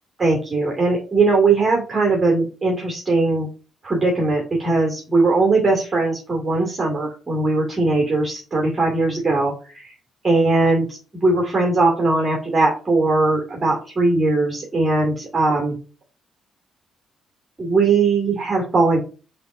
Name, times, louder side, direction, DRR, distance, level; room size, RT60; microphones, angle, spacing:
voice 1, 0.2-3.5 3.8-9.9 10.2-15.7 17.6-19.0, right 3 dB, 25° right, -1 dB, 2.4 m, -19 dB
5.8 x 3.9 x 5.3 m, 0.34 s
cardioid pair, 90°, 0 cm